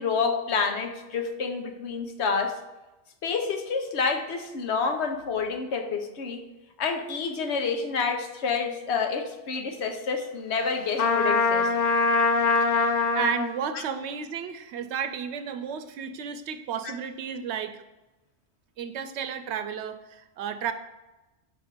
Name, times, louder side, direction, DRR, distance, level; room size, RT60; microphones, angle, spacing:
voice 1, 0.0-2.5 3.2-6.4 6.8-11.7 13.7-13.8, left 5 dB, 80° left, 5 dB, 1.1 m, -28 dB
Trumpet, 11.0-13.5, left 4 dB, 60° left, 0.7 m, -23 dB
voice 2, 12.6-17.8 18.8-20.7, right 7 dB, 80° right, 9 dB, 0.9 m, -33 dB
5.4 x 4.3 x 5.0 m, 1.0 s
omnidirectional pair, 1.1 m